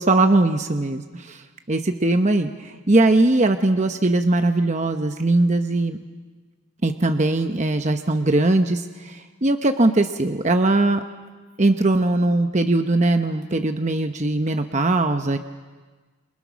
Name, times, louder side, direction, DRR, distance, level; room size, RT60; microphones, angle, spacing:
voice 1, 0.0-1.4 1.7-6.0 6.8-11.0 11.6-15.4, right 2 dB, 35° right, 7 dB, 0.9 m, -20 dB
29.5 x 28.5 x 6.3 m, 1.4 s
head